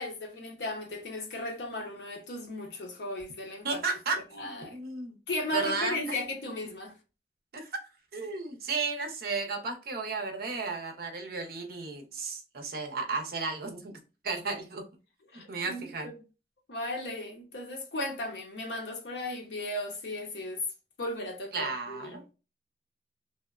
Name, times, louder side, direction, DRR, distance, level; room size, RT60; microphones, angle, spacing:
voice 1, 0.0-3.8 4.4-4.8 5.3-6.9 15.3-16.1 16.7-20.6 21.0-22.2, left 1 dB, 70° left, 0.7 m, -36 dB
voice 2, 3.6-5.2 5.5-6.2 7.5-7.7 8.1-13.9 14.2-14.8 15.5-16.1 21.5-22.2, right 4 dB, 55° right, 0.6 m, -34 dB
2.9 x 2.0 x 2.3 m
head